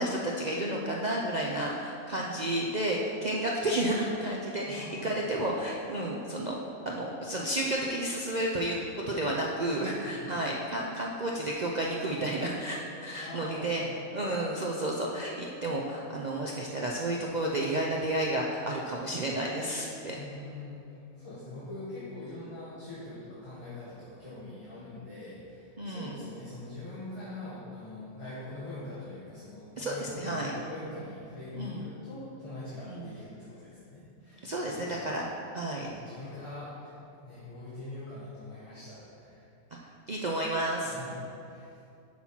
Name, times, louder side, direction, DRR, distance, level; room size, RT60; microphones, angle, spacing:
voice 1, 0.0-6.6 6.9-13.8 14.1-20.2 25.8-26.1 29.8-30.5 31.5-31.8 32.9-33.1 34.4-35.3 35.5-35.9 39.7-39.8 40.1-41.0, right 1 dB, 55° right, -2 dB, 0.5 m, -31 dB
voice 2, 4.6-5.2 9.7-10.3 13.2-13.9 20.1-35.2 35.8-36.9 37.2-39.5 40.8-41.7, left 2 dB, 20° left, -11 dB, 1.5 m, -43 dB
8.6 x 5.8 x 4.4 m, 2.6 s
omnidirectional pair, 1.5 m